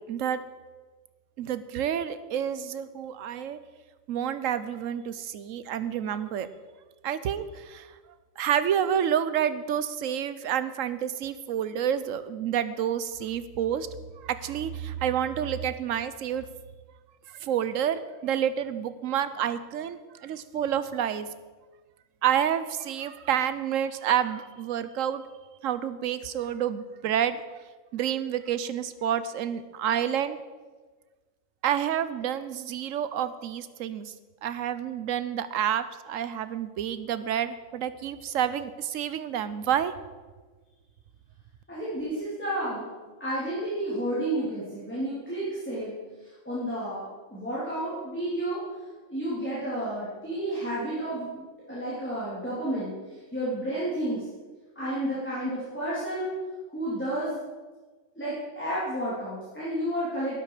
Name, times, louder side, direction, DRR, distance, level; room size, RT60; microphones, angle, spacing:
voice 1, 0.1-0.4 1.4-3.6 4.1-6.5 7.0-7.9 8.4-13.9 14.2-16.5 17.3-21.3 22.2-25.2 25.6-27.4 27.9-30.4 31.6-34.1 34.4-39.9, right 9 dB, 75° right, 13 dB, 1.1 m, -29 dB
voice 2, 41.7-42.8 43.2-45.9 46.2-48.6 49.1-54.2 54.8-56.3 56.7-57.4 58.2-60.4, right 1 dB, 10° left, -9 dB, 3.5 m, -31 dB
12.5 x 11.5 x 4.9 m, 1.3 s
omnidirectional pair, 1.4 m